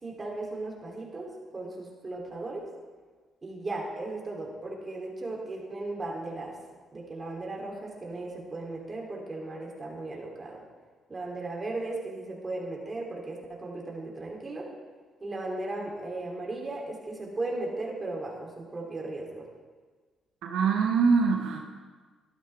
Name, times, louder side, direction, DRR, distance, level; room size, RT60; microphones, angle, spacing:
voice 1, 0.0-2.7 3.4-6.5 6.9-10.6 11.1-14.7 15.2-19.4, right 2 dB, 30° right, -1 dB, 3.0 m, -36 dB
voice 2, 20.4-21.6, right 5 dB, 90° right, 1 dB, 1.1 m, -23 dB
13.0 x 12.0 x 3.4 m, 1.4 s
cardioid pair, 90°, 0 cm